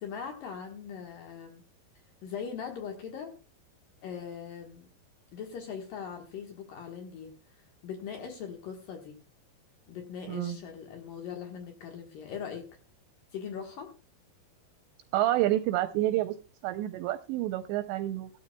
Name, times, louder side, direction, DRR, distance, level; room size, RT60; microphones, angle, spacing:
voice 1, 0.0-1.6 2.2-3.3 4.0-4.9 5.3-9.2 9.9-12.7 13.3-13.9, left 7 dB, 65° left, 3 dB, 2.4 m, -40 dB
voice 2, 15.1-16.4 16.6-18.3, right 14 dB, 80° right, 10 dB, 2.7 m, -28 dB
17.0 x 12.5 x 2.2 m, 0.35 s
omnidirectional pair, 5.4 m